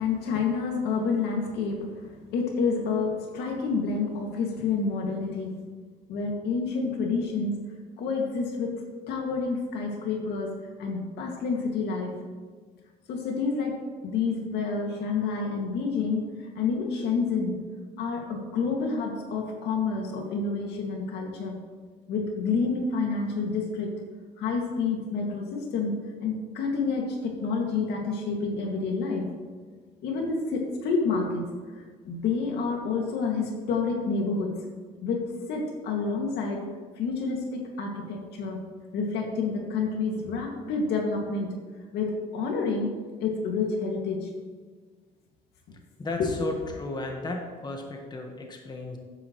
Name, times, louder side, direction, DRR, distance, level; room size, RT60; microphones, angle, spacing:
voice 1, 0.0-2.1 2.3-5.6 6.1-7.6 8.0-12.1 13.1-17.6 18.0-21.6 22.1-24.0 24.4-26.0 26.2-29.3 30.0-31.4 31.7-34.5 35.0-36.7 37.0-38.6 38.9-41.5 41.9-44.3 46.2-46.3, left 4 dB, 80° left, 1 dB, 2.2 m, -29 dB
voice 2, 46.0-49.0, left 2 dB, 25° left, 2 dB, 1.4 m, -34 dB
13.0 x 10.0 x 3.2 m, 1.5 s
cardioid pair, 110°, 17 cm